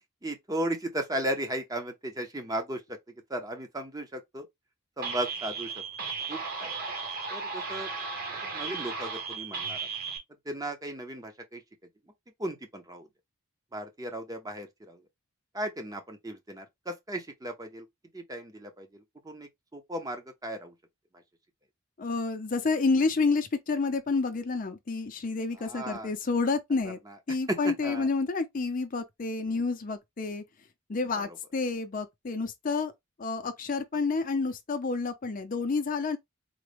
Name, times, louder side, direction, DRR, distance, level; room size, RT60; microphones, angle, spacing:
voice 1, 0.2-3.0 3.3-4.5 5.0-5.7 6.3-6.7 7.3-7.9 8.4-9.8 10.5-11.6 12.4-13.1 13.7-15.0 15.5-17.9 18.1-20.7 25.6-26.1 27.5-28.1 31.2-31.3, right 1 dB, 15° right, 0.6 m, -35 dB
sound 1, 5.0-10.2, right 4 dB, 45° right, 1.0 m, -35 dB
voice 2, 22.0-27.0 27.3-30.4 30.9-32.9 33.2-36.2, left 4 dB, 40° left, 0.5 m, -29 dB
3.8 x 2.1 x 3.1 m
head